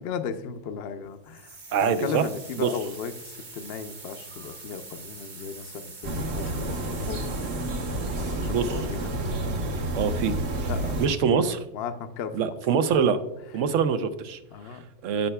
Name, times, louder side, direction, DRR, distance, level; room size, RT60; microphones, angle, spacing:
voice 1, 0.0-7.3 8.2-9.4 10.7-11.5 11.7-12.6 13.1-13.2 14.5-14.9, left 6 dB, 60° left, 9 dB, 0.8 m, -36 dB
sound 1, 1.3-10.1, right 3 dB, 40° right, 1.1 m, -45 dB
voice 2, 1.7-2.2 2.6-2.7 8.5-8.7 9.9-10.3 11.0-11.6 12.3-13.2 13.5-14.4 15.0-15.3, right 7 dB, 80° right, 11 dB, 1.0 m, -24 dB
sound 2, 6.0-11.1, right 1 dB, 60° right, 1.2 m, -29 dB
13.0 x 5.6 x 2.2 m, 0.92 s
omnidirectional pair, 1.3 m